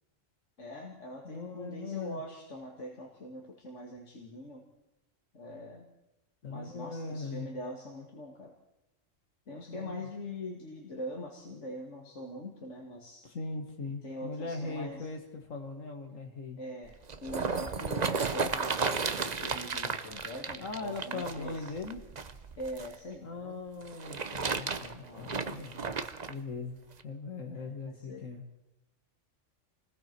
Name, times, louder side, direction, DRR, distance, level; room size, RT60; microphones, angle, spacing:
voice 1, 0.6-4.6 5.3-5.9 6.5-8.5 9.5-13.3 14.0-15.1 16.6-16.9 17.2-21.7 22.6-23.6 25.0-26.1 27.4-28.2, left 1 dB, 70° left, -1 dB, 2.4 m, -43 dB
voice 2, 1.2-2.2 6.4-7.5 9.7-10.1 13.2-16.6 20.6-22.0 23.2-25.7 26.3-28.4, left 3 dB, 90° left, 3 dB, 2.3 m, -40 dB
sound 1, 16.9-23.0 23.8-26.3 27.0-27.1, right 5 dB, 35° right, 0.9 m, -34 dB
28.5 x 20.5 x 4.6 m, 0.92 s
omnidirectional pair, 1.3 m